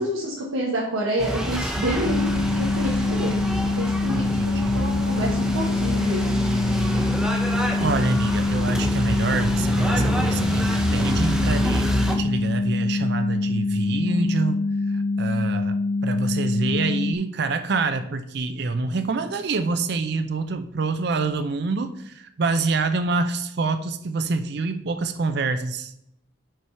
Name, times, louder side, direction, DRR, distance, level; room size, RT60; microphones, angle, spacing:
voice 1, 0.0-3.4 3.8-6.2, equal, 90° right, -4 dB, 1.4 m, -28 dB
sound 1, 1.2-12.2, equal, 5° right, 0.7 m, -26 dB
sound 2, 2.0-17.1, left 3 dB, 55° left, 0.4 m, -25 dB
voice 2, 4.1-4.8 7.8-14.6 14.9-26.0, right 3 dB, 55° right, 10 dB, 0.5 m, -26 dB
5.6 x 4.8 x 5.6 m, 0.78 s
head